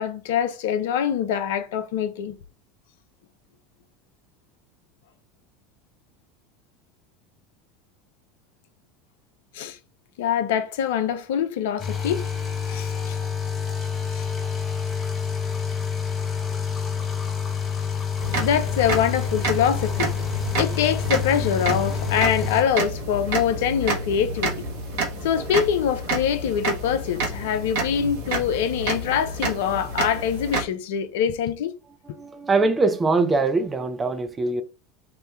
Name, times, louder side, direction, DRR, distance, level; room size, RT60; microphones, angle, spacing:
voice 1, 0.0-2.4 9.5-9.8 10.2-12.3 12.7-13.2 13.7-13.8 14.1-14.3 18.3-20.1 20.6-24.5 25.2-31.7, left 8 dB, 65° left, 0.4 m, -24 dB
sound 1, 11.8-22.6, left 6 dB, 30° left, 0.8 m, -28 dB
sound 2, 18.2-30.6, right 2 dB, 65° right, 0.9 m, -29 dB
voice 2, 32.2-34.6, right 3 dB, 20° right, 0.5 m, -22 dB
2.9 x 2.1 x 3.2 m
figure-of-eight pair, 75°, 0 cm